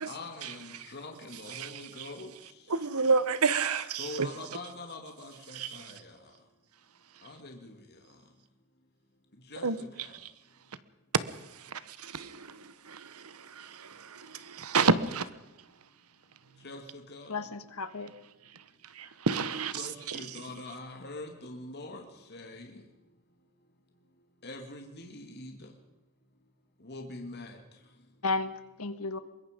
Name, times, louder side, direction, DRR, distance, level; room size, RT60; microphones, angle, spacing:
voice 1, 0.1-2.3 4.0-6.0 7.2-7.7 9.5-9.7 16.6-16.8 17.1-17.3 19.7-22.0 22.3-22.8 24.4-25.5 26.8-27.6, left 2 dB, 50° left, 2.4 m, -43 dB
voice 2, 2.7-4.3 5.5-5.9 9.6-9.8 11.3-11.4 11.6-15.3 18.9-19.8 20.1-20.2, right 4 dB, 75° right, 1.1 m, -30 dB
voice 3, 17.3-18.1 28.2-29.2, left 3 dB, 75° left, 1.5 m, -33 dB
23.5 x 21.5 x 5.2 m
head